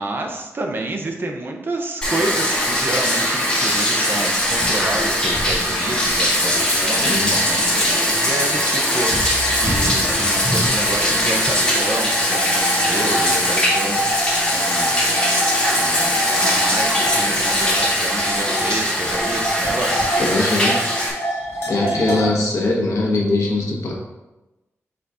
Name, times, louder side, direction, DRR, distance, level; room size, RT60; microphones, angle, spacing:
voice 1, 0.0-14.0 14.5-15.0 15.7-20.1 21.7-22.3, right 2 dB, 45° right, 3 dB, 0.8 m, -29 dB
Bathtub (filling or washing), 2.0-21.1, left 1 dB, 20° left, 2.0 m, -20 dB
voice 2, 7.0-7.5 20.2-20.9 21.7-23.9, left 2 dB, 75° left, -2 dB, 1.4 m, -21 dB
sound 1, 11.7-22.2, equal, 50° left, 1.4 m, -27 dB
4.9 x 4.0 x 4.9 m, 1.0 s
wide cardioid pair, 130°, 5 cm